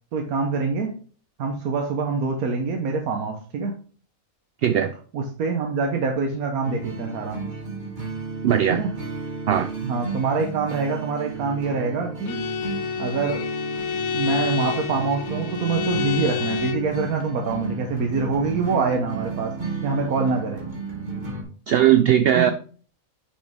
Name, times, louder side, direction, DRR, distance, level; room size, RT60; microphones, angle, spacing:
voice 1, 0.1-0.9 1.4-3.7 5.1-7.4 8.7-8.9 9.8-12.4 13.0-13.4 14.1-19.5 19.8-20.6 22.4-22.5, right 4 dB, 85° right, 3 dB, 1.4 m, -25 dB
voice 2, 4.6-4.9 8.4-8.8 9.5-9.7 21.7-22.5, right 10 dB, 70° right, 10 dB, 0.6 m, -18 dB
sound 1, 6.6-21.4, right 3 dB, 35° right, 1.5 m, -33 dB
Bowed string instrument, 12.3-16.9, left 7 dB, 85° left, 1.2 m, -29 dB
6.3 x 5.9 x 3.5 m, 0.42 s
omnidirectional pair, 1.5 m